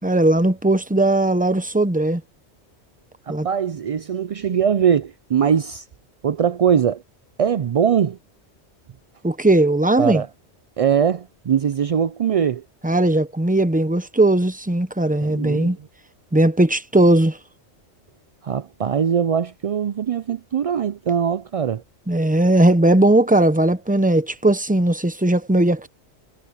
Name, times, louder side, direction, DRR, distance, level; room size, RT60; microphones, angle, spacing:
voice 1, 0.0-2.2 3.3-3.5 9.2-10.2 12.8-15.8 16.3-17.4 22.1-25.9, right 1 dB, 10° right, 0.8 m, -18 dB
voice 2, 3.3-5.8 6.2-7.0 7.4-8.2 10.0-10.3 10.8-12.6 15.2-15.9 18.4-21.8, right 8 dB, 65° right, 0.3 m, -21 dB
omnidirectional pair, 1.2 m